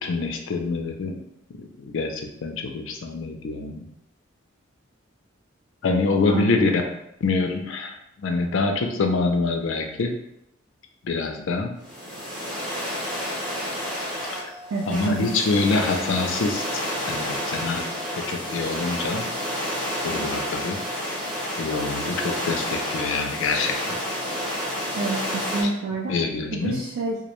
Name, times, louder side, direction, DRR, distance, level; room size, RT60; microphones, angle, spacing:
voice 1, 0.0-1.2 1.6-3.8 5.8-6.7 7.2-10.1 11.0-11.7 14.9-16.6 17.1-17.8 18.2-19.2 20.0-20.8 21.6-24.0 25.6-25.7 26.1-26.8, left 3 dB, 70° left, 3 dB, 0.4 m, -25 dB
sound 1, 11.8-25.6, equal, 5° left, 0.7 m, -30 dB
voice 2, 14.7-15.3 24.9-26.1 26.5-27.2, right 3 dB, 90° right, -1 dB, 0.3 m, -28 dB
2.3 x 2.1 x 2.9 m, 0.78 s
head